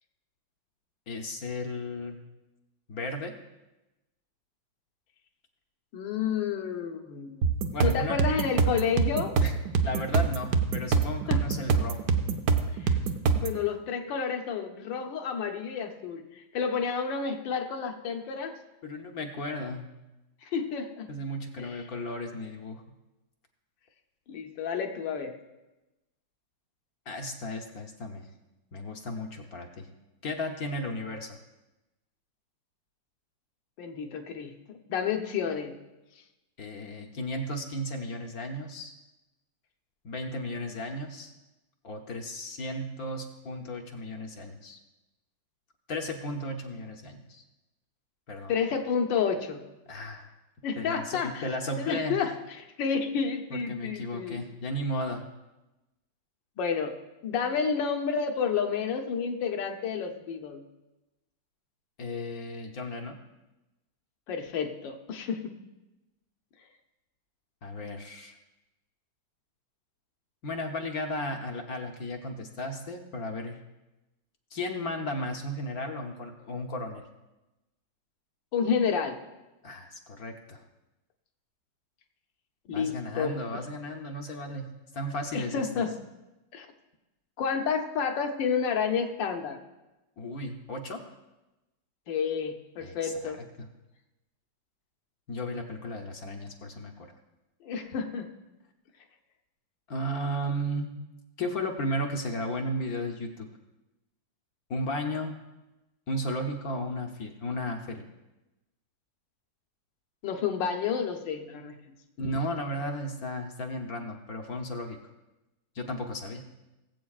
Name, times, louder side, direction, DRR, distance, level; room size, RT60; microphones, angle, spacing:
voice 1, 1.1-2.2 2.9-3.3 7.7-8.2 9.4-9.5 9.8-12.0 18.8-19.9 21.1-22.8 27.1-28.3 28.7-29.9 30.2-31.4 36.6-38.9 40.0-41.3 41.8-44.8 45.9-47.4 48.3-48.5 49.9-50.3 50.8-52.2 53.5-55.2 62.0-63.2 67.6-68.3 70.4-73.6 74.5-77.0 79.6-80.6 82.7-84.7 84.9-85.9 90.2-91.0 92.8-93.7 95.3-96.9 99.9-100.9 101.4-103.5 104.7-105.3 106.1-108.1 112.2-115.0 115.7-116.4, left 1 dB, 60° left, 3 dB, 1.1 m, -34 dB
voice 2, 5.9-7.4 7.8-9.4 11.3-11.4 12.7-13.0 13.4-18.5 20.4-21.1 21.6-21.7 24.3-25.3 33.8-35.8 48.5-49.6 50.6-51.4 51.8-54.4 56.6-57.0 57.2-60.6 64.3-65.5 78.5-79.2 82.7-83.3 85.3-85.9 86.5-86.7 87.4-89.6 92.1-93.4 97.6-98.3 110.2-111.8, left 6 dB, 75° left, 5 dB, 1.6 m, -30 dB
sound 1, 7.4-13.6, right 5 dB, 65° right, 1.0 m, -25 dB
19.5 x 8.0 x 2.4 m, 1.0 s
omnidirectional pair, 2.1 m